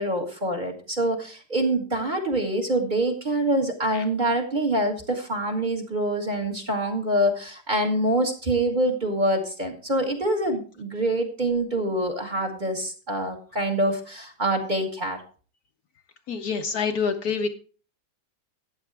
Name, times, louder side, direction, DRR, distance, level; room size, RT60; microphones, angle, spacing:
voice 1, 0.0-15.2, right 1 dB, 25° right, 4 dB, 1.7 m, -25 dB
voice 2, 16.3-17.5, left 5 dB, 65° left, 6 dB, 1.2 m, -26 dB
14.0 x 9.0 x 3.4 m, 0.38 s
omnidirectional pair, 1.9 m